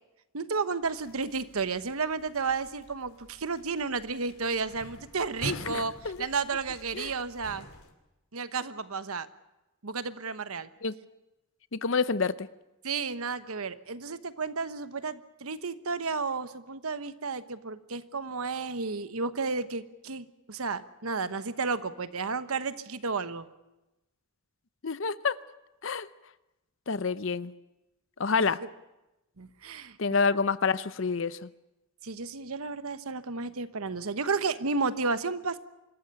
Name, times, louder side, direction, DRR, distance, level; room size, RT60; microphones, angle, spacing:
voice 1, 0.3-5.9 6.2-7.7 8.3-9.3 9.8-10.7 12.8-23.5 29.4-30.0 32.0-35.6, right 4 dB, 75° right, 12 dB, 1.1 m, -32 dB
sound 1, 0.8-7.9, equal, 75° left, 2.8 m, -46 dB
voice 2, 5.5-6.2 6.9-7.1 10.8-10.9 11.7-12.5 24.8-25.4 25.8-26.1 26.9-27.5 28.2-28.6 30.0-31.5, left 5 dB, 55° left, 16 dB, 0.7 m, -28 dB
25.5 x 14.0 x 9.9 m, 0.98 s
head